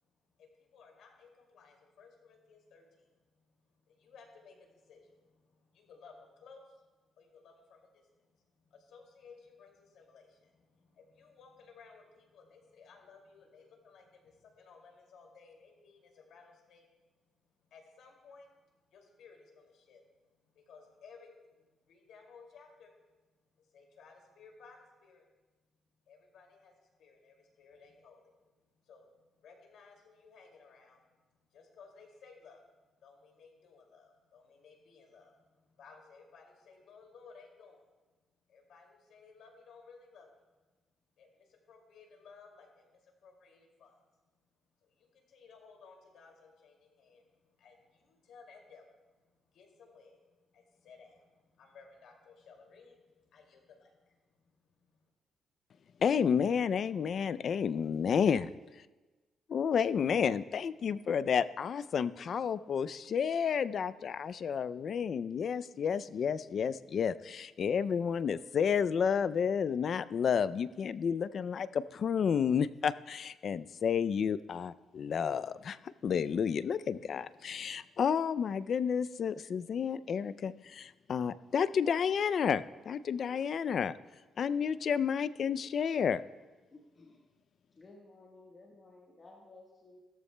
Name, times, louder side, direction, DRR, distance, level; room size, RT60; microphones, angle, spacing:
voice 1, 0.4-16.9 17.6-22.9 23.6-25.2 26.1-28.5 28.7-37.8 38.5-40.4 41.2-44.0 44.8-55.1, left 5 dB, 80° left, 1 dB, 2.4 m, -58 dB
voice 2, 56.0-58.8 59.5-84.0 84.4-86.2, left 7 dB, 50° left, 16 dB, 0.3 m, -31 dB
voice 3, 86.7-87.2 87.8-90.0, left 2 dB, 30° left, -3 dB, 1.3 m, -56 dB
16.5 x 13.5 x 2.2 m, 1.2 s
cardioid pair, 135°, 0 cm